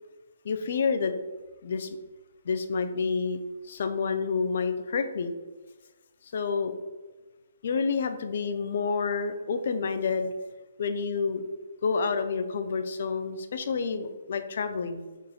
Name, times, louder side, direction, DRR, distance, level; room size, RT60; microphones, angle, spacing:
voice 1, 0.4-1.1 1.6-1.9 2.5-3.4 3.7-5.3 6.3-6.7 7.6-10.3 10.8-11.5 11.8-15.1, left 5 dB, 55° left, 8 dB, 0.3 m, -29 dB
3.8 x 2.8 x 2.3 m, 1.2 s
figure-of-eight pair, 130°, 0 cm